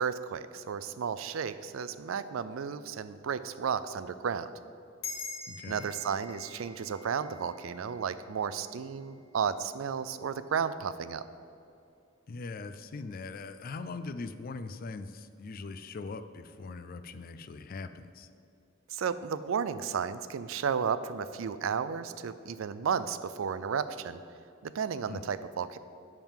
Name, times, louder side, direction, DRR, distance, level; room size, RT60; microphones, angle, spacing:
voice 1, 0.0-4.5 5.7-11.2 18.9-24.2 24.6-25.8, right 6 dB, 85° right, 14 dB, 0.4 m, -33 dB
sound 1, 5.0-9.7, left 4 dB, 80° left, 2.0 m, -45 dB
voice 2, 5.5-5.9 12.3-18.3 25.1-25.2, left 3 dB, 45° left, 11 dB, 0.4 m, -41 dB
10.5 x 3.7 x 7.2 m, 2.5 s
head